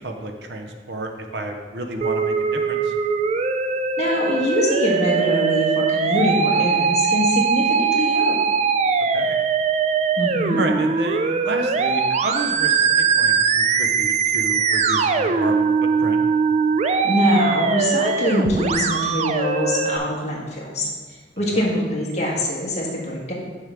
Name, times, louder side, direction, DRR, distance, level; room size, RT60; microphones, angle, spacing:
voice 1, 0.0-2.9 9.1-9.4 10.6-16.2 21.5-21.7, right 2 dB, 65° right, 4 dB, 0.7 m, -31 dB
Musical instrument, 2.0-20.0, right 5 dB, 40° right, 0.3 m, -21 dB
voice 2, 4.0-8.4 10.2-10.6 17.0-20.9 21.4-23.3, equal, 40° left, -3 dB, 1.4 m, -23 dB
6.5 x 6.3 x 3.5 m, 1.5 s
head